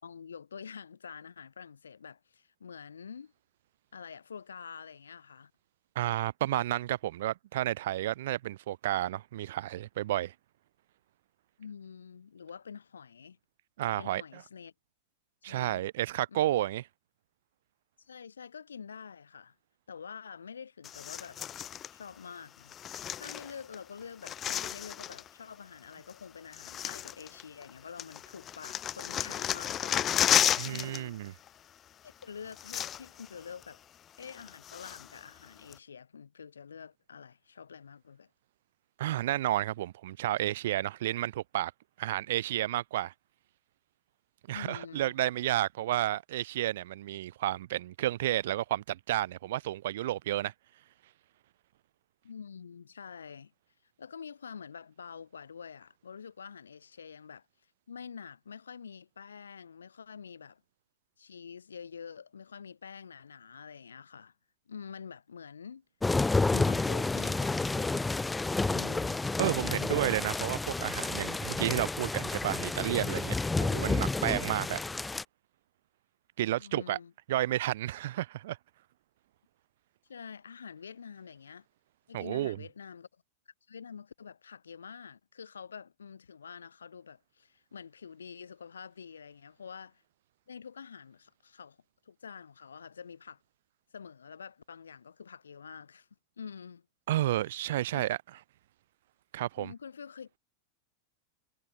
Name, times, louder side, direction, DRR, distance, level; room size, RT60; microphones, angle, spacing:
voice 1, 0.0-3.3 3.9-5.5 11.6-13.4 14.0-14.7 15.5-15.8 16.3-16.4 18.0-19.5 19.9-21.4 21.9-22.8 23.2-30.1 30.6-31.2 32.0-33.8 34.2-38.3 44.5-45.1 52.2-53.5 54.0-57.4 57.9-60.6 61.2-64.3 64.7-65.8 66.5-68.1 68.7-69.3 76.6-77.1 80.1-81.7 82.1-83.1 83.7-90.0 90.5-91.8 92.0-93.4 93.9-96.1 96.4-96.9 97.9-98.0 99.6-100.4, left 6 dB, 85° left, 5.0 m, -47 dB
voice 2, 5.9-10.3 13.8-14.4 15.4-16.8 30.6-31.3 39.0-41.7 42.0-43.1 44.5-50.5 69.4-74.8 76.4-77.0 77.3-78.6 82.1-82.6 97.1-98.2 99.3-99.7, right 14 dB, 70° right, 1.7 m, -31 dB
sound 1, 20.8-21.9 22.7-23.8 24.0-25.3 26.1-26.2 26.5-27.7 28.0-31.0 31.3-31.5 32.2-32.3 32.5-33.3 33.6-33.7 34.2-35.2 35.7-35.8, left 10 dB, 30° left, 3.5 m, -32 dB
sound 2, 66.0-75.2, left 3 dB, 10° left, 1.6 m, -30 dB
hypercardioid pair, 100°, 0 cm